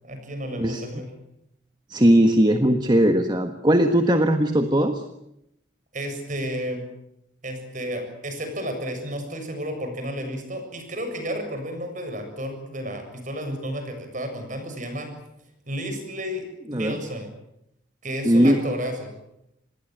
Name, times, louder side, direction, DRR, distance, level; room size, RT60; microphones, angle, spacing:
voice 1, 0.0-1.1 5.9-6.8 7.4-15.1 15.7-16.4 16.7-17.3 18.0-19.1, equal, 40° right, 6 dB, 7.2 m, -32 dB
voice 2, 1.9-5.0 16.7-17.0 18.2-18.6, right 1 dB, 25° right, 7 dB, 1.4 m, -19 dB
27.0 x 20.5 x 9.0 m, 0.81 s
head